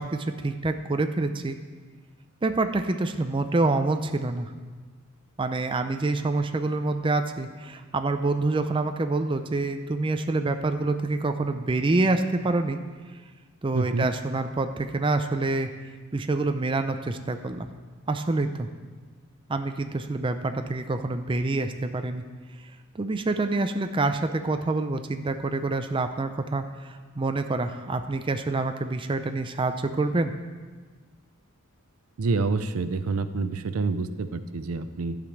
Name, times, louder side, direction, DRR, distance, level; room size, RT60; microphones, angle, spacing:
voice 1, 0.0-1.6 2.4-4.5 5.4-12.8 13.6-15.7 16.1-17.7 18.1-18.7 19.5-22.2 22.9-30.3, right 2 dB, 25° right, 7 dB, 0.4 m, -27 dB
voice 2, 13.7-14.1 32.2-35.2, right 3 dB, 90° right, 12 dB, 0.5 m, -27 dB
11.5 x 5.1 x 7.1 m, 1.4 s
head